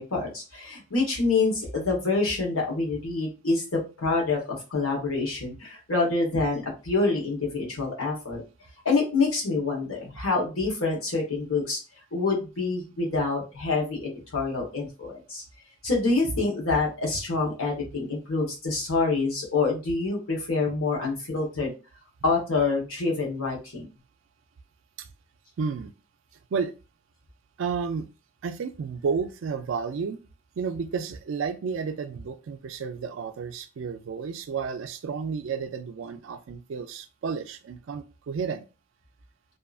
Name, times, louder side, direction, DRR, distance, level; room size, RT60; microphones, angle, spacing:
voice 1, 0.0-8.4 8.8-11.8 12.1-15.4 15.8-21.7 22.2-23.9, left 3 dB, 80° left, 1.1 m, -26 dB
voice 2, 25.6-25.9 26.5-26.7 27.6-28.1 28.4-30.2 30.6-38.7, right 5 dB, 60° right, 0.3 m, -31 dB
2.7 x 2.4 x 2.3 m
head